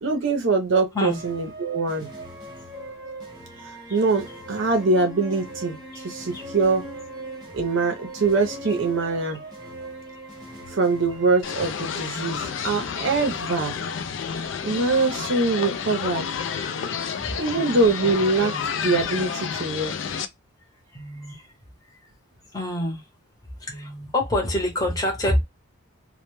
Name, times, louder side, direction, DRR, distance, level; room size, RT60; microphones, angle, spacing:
voice 1, 0.0-2.1 3.9-6.9 7.5-9.4 10.7-13.8 14.6-16.2 17.4-18.5 18.8-19.9, right 3 dB, 60° right, 0.6 m, -23 dB
sound 1, 0.9-11.7, right 2 dB, 20° right, 0.9 m, -39 dB
sound 2, 11.4-20.3, left 6 dB, 60° left, 0.3 m, -30 dB
voice 2, 20.9-21.5 22.5-23.0 23.6-25.4, left 1 dB, 15° left, 0.7 m, -26 dB
2.1 x 2.1 x 3.0 m
head